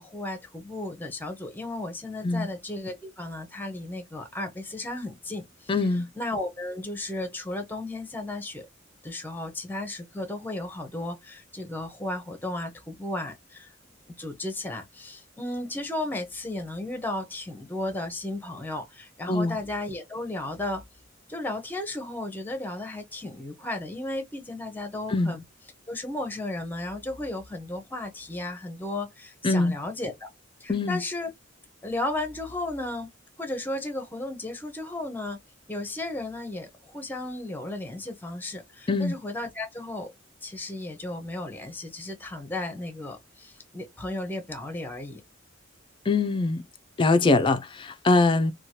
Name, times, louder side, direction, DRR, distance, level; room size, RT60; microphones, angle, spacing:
voice 1, 0.0-5.7 6.2-8.7 9.0-13.7 14.1-20.8 21.3-25.4 25.9-30.3 30.6-31.3 31.8-33.1 33.4-35.4 35.7-40.1 40.4-45.2, left 2 dB, 10° left, 0.7 m, -34 dB
voice 2, 5.7-6.1 19.3-19.6 25.1-25.3 29.4-29.7 30.7-31.0 38.9-39.1 46.1-46.6 47.0-48.5, left 3 dB, 25° left, 0.3 m, -23 dB
2.9 x 2.3 x 2.8 m
head